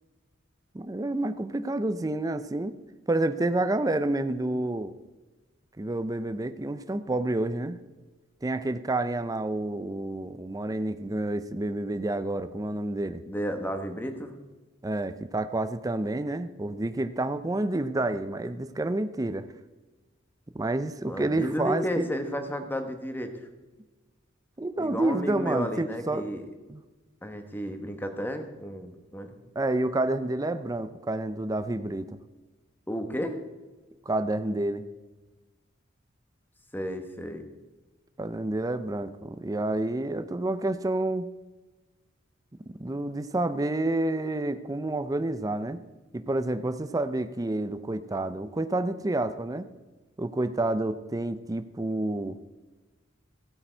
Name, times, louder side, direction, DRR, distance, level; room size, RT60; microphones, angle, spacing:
voice 1, 0.7-2.7 3.1-4.9 5.8-7.8 8.4-13.2 14.8-19.5 20.5-22.1 24.6-26.3 26.7-26.8 29.6-32.1 34.1-34.8 38.2-41.3 42.8-45.8 46.1-49.7 50.2-52.4, right 2 dB, 20° right, 11 dB, 0.5 m, -29 dB
voice 2, 13.3-14.4 21.1-23.3 24.8-26.4 27.2-29.4 32.9-33.4 36.7-37.4, equal, 10° left, 6 dB, 1.2 m, -32 dB
15.5 x 8.5 x 4.5 m, 1.2 s
head